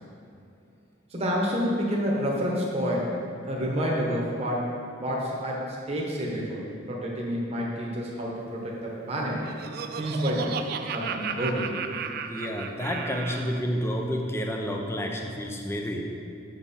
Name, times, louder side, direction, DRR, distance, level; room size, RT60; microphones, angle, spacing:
voice 1, 1.1-3.1 3.4-4.7 5.0-6.6 6.9-9.4 10.0-11.8, equal, 30° right, -3 dB, 1.1 m, -29 dB
Laughter, 9.1-13.6, right 6 dB, 50° right, 0.3 m, -35 dB
voice 2, 12.3-16.0, equal, 15° left, 1 dB, 0.5 m, -30 dB
7.1 x 5.5 x 4.2 m, 2.7 s
head